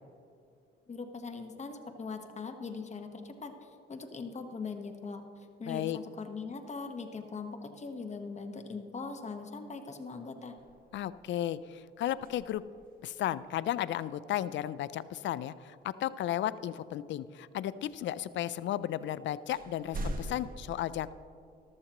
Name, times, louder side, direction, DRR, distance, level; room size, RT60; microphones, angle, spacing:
voice 1, 0.9-5.2 5.6-10.6, left 4 dB, 35° left, 5 dB, 1.2 m, -41 dB
voice 2, 5.7-6.0 10.9-12.6 13.0-21.1, left 12 dB, 70° left, 16 dB, 0.4 m, -34 dB
sound 1, 10.6-11.3 12.1-13.1 16.6-16.7 18.7-18.8 19.5-20.6, right 1 dB, 45° right, 1.3 m, -41 dB
14.0 x 13.0 x 3.0 m, 2.5 s
cardioid pair, 90°, 20 cm